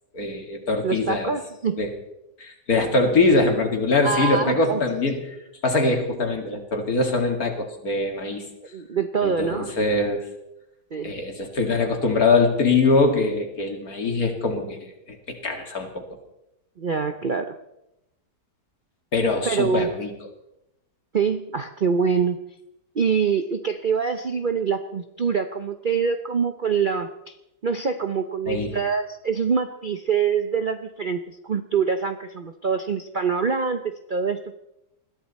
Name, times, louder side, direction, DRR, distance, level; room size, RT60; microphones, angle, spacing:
voice 1, 0.1-1.3 1.8-1.9 2.4-5.4 5.6-8.4 9.2-10.3 11.0-14.8 15.1-16.0 19.1-20.1 28.5-28.7, left 3 dB, 60° left, 4 dB, 2.8 m, -23 dB
voice 2, 0.8-1.8 4.0-4.8 8.7-9.8 10.9-11.1 16.8-17.5 19.5-19.9 21.1-22.4 22.9-27.3 27.6-34.5, right 6 dB, 45° right, 8 dB, 0.6 m, -25 dB
21.0 x 15.0 x 4.2 m, 0.87 s
omnidirectional pair, 1.8 m